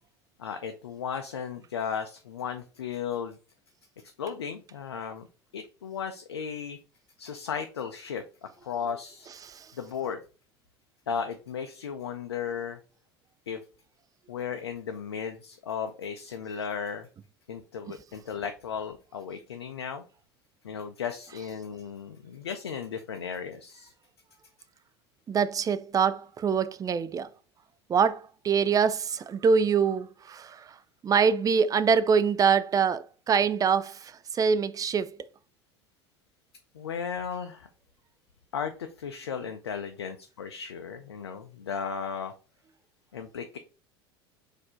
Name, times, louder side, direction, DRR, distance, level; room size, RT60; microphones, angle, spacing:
voice 1, 0.4-3.4 4.2-5.3 5.5-6.8 7.2-9.3 9.7-10.2 11.1-12.8 13.5-13.6 14.3-17.1 17.5-20.0 20.6-23.9 36.7-37.7 38.5-42.3 43.1-43.6, left 7 dB, 90° left, 0.4 m, -35 dB
voice 2, 25.3-27.3 27.9-30.8 31.0-35.1, right 6 dB, 25° right, 0.4 m, -25 dB
4.2 x 2.7 x 4.3 m
hypercardioid pair, 80°, 13 cm